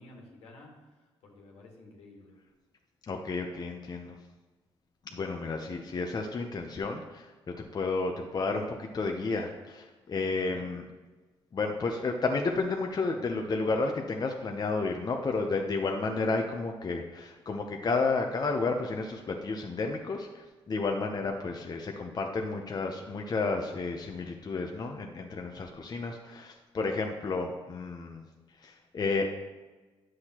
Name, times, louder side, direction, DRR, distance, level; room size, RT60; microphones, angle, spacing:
voice 1, 0.0-2.4 10.4-10.7 21.3-21.6, left 2 dB, 80° left, -1 dB, 1.7 m, -52 dB
voice 2, 3.1-4.2 5.1-10.8 11.5-28.2 28.6-29.3, left 3 dB, 40° left, 3 dB, 0.7 m, -32 dB
9.7 x 6.3 x 3.0 m, 1.3 s
cardioid pair, 80°, 10 cm